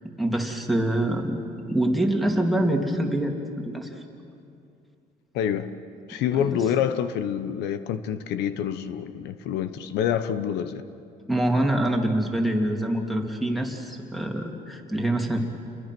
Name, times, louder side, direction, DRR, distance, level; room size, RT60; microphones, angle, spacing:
voice 1, 0.2-1.4 1.7-3.3 3.6-4.0 6.3-6.6 11.3-15.4, right 1 dB, ahead, 2 dB, 2.8 m, -25 dB
voice 2, 5.3-5.7 6.1-10.8, left 9 dB, 85° left, 12 dB, 1.0 m, -27 dB
29.5 x 22.5 x 6.1 m, 2.5 s
cardioid pair, 110°, 17 cm